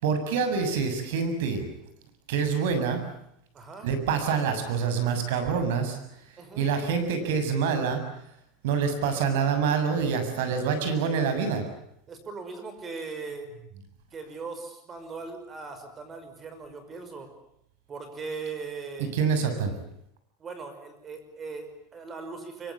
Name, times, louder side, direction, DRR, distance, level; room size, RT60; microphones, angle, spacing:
voice 1, 0.0-1.7 2.3-3.0 3.8-6.0 6.6-8.0 8.6-11.6 19.0-19.7, right 6 dB, 80° right, 8 dB, 7.2 m, -26 dB
voice 2, 3.5-3.9 6.4-6.8 12.1-13.5 14.1-17.3 17.9-19.2 20.4-22.7, right 4 dB, 20° right, 9 dB, 5.7 m, -39 dB
24.5 x 24.0 x 8.7 m, 0.76 s
supercardioid pair, 160°, 0 cm